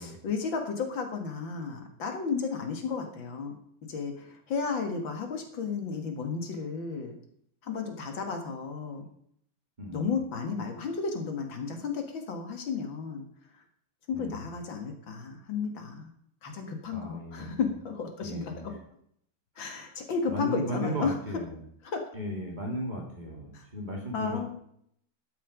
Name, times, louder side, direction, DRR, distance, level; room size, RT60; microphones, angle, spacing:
voice 1, 0.0-3.6 3.9-7.2 7.6-9.1 9.9-13.2 13.5-13.6 14.1-16.1 16.4-18.7 19.6-21.1 21.8-22.0 23.5-23.7 24.1-24.5, left 5 dB, 70° left, 5 dB, 2.3 m, -33 dB
voice 2, 9.8-10.1 14.1-14.4 16.9-17.6 18.2-18.6 19.6-19.7 20.3-21.6 22.1-24.5, equal, 20° right, -1 dB, 2.7 m, -36 dB
13.0 x 7.5 x 5.1 m, 0.69 s
omnidirectional pair, 2.2 m